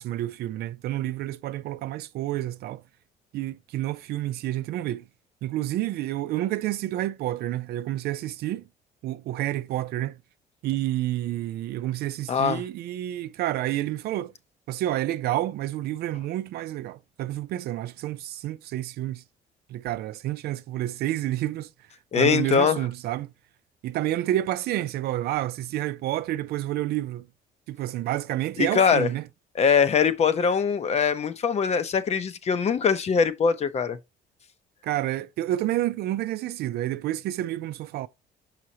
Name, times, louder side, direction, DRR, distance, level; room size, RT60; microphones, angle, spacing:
voice 1, 0.0-2.8 3.3-5.0 5.4-8.6 9.0-10.2 10.6-14.3 14.7-19.2 19.7-21.7 22.1-23.3 23.8-27.3 27.7-29.2 34.8-38.1, right 14 dB, 70° right, 0.4 m, -29 dB
voice 2, 12.3-12.6 22.1-22.8 28.6-29.1 29.6-34.0, left 6 dB, 40° left, 0.8 m, -22 dB
6.2 x 5.7 x 2.8 m
cardioid pair, 110°, 17 cm